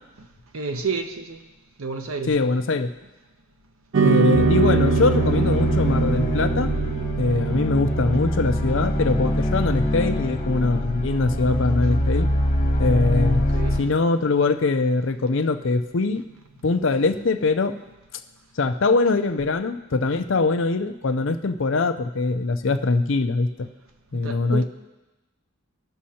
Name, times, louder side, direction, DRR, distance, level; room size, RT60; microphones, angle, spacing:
voice 1, 0.5-1.4 1.8-2.4 13.5-13.8 24.2-24.6, right 4 dB, 90° right, 6 dB, 0.8 m, -30 dB
voice 2, 2.3-2.9 4.0-6.7 7.2-12.3 12.8-13.4 13.8-16.2 16.6-17.7 18.6-23.7 24.1-24.6, left 3 dB, 65° left, 8 dB, 0.6 m, -22 dB
sound 1, 3.9-12.5, right 5 dB, 65° right, 0.4 m, -26 dB
sound 2, 4.3-13.8, left 1 dB, 35° left, 1.3 m, -24 dB
18.5 x 6.3 x 2.9 m, 1.1 s
head